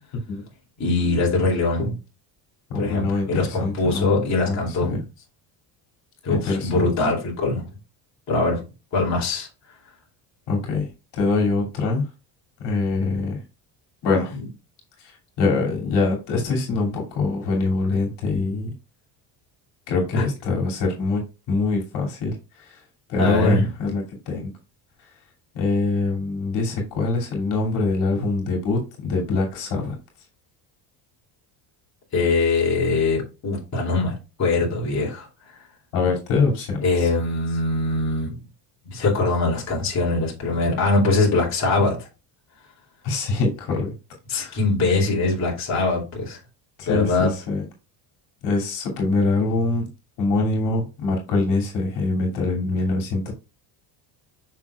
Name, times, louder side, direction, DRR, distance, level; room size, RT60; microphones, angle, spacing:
voice 1, 0.8-1.9 2.7-5.0 6.2-7.6 8.3-8.6 8.9-9.5 20.1-20.2 23.2-23.6 32.1-35.3 36.8-38.4 38.9-42.1 44.3-46.4 46.9-47.3, left 3 dB, 35° left, -3 dB, 2.8 m, -22 dB
voice 2, 2.7-4.2 4.4-5.0 6.3-6.9 10.5-12.0 12.6-13.4 14.0-14.4 15.0-18.7 19.9-21.2 21.5-22.8 23.1-24.5 25.5-30.0 35.9-37.1 43.0-43.9 44.3-44.6 46.8-47.7 48.4-49.9 50.2-53.3, left 3 dB, 65° left, 0 dB, 2.7 m, -24 dB
7.4 x 6.0 x 2.4 m, 0.29 s
cardioid pair, 140°, 45 cm